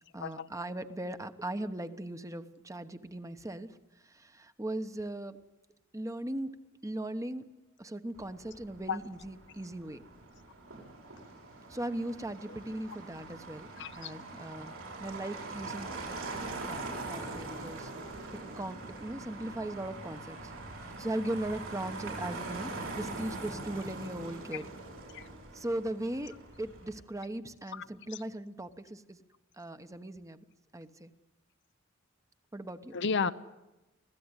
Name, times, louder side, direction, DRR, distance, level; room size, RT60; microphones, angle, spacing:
voice 1, 0.1-3.8 4.0-5.4 5.9-7.5 7.8-10.0 11.7-13.7 14.0-16.2 16.6-17.9 18.5-20.5 20.8-24.7 25.5-26.3 26.6-29.2 29.6-30.4 30.7-31.1 32.5-33.0, right 1 dB, 15° right, 1.1 m, -38 dB
Motor vehicle (road), 8.1-26.9, right 2 dB, 80° right, 6.9 m, -43 dB
voice 2, 13.8-14.1 25.1-25.2 27.7-27.8 32.9-33.3, left 5 dB, 60° left, 0.8 m, -32 dB
25.5 x 16.5 x 9.8 m
head